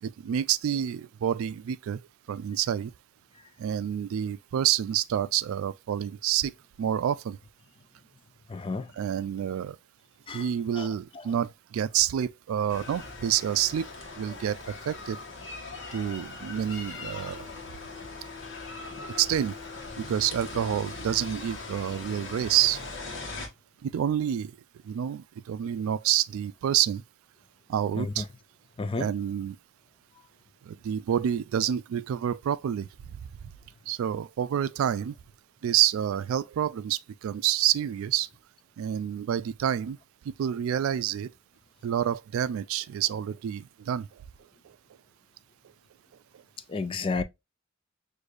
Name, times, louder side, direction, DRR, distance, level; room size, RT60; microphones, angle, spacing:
voice 1, 0.0-2.0 2.3-2.9 3.6-6.5 6.8-7.4 9.0-9.8 10.3-13.9 14.2-15.2 15.9-17.5 19.2-19.5 20.0-22.8 23.8-24.5 24.8-27.0 27.7-28.2 29.0-29.6 30.7-32.9 33.9-35.1 35.6-38.3 38.8-40.0 40.4-41.3 41.8-44.1, right 10 dB, 85° right, 0.3 m, -28 dB
voice 2, 8.5-8.9 10.3-10.5 10.8-10.9 11.1-11.2 17.2-17.3 27.9-28.2 28.8-29.1 46.7-47.2, left 4 dB, 25° left, 0.3 m, -32 dB
sound 1, 12.7-23.5, left 3 dB, 65° left, 1.2 m, -40 dB
6.3 x 2.6 x 2.4 m
head